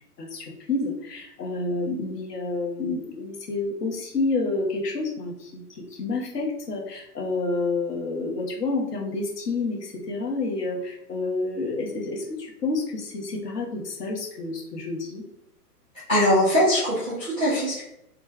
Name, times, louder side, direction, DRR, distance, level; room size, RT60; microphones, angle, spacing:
voice 1, 0.2-15.2, left 3 dB, 75° left, -1 dB, 1.3 m, -29 dB
voice 2, 16.1-17.8, equal, 10° left, -11 dB, 0.4 m, -21 dB
3.2 x 2.3 x 3.2 m, 0.80 s
hypercardioid pair, 150°, 47 cm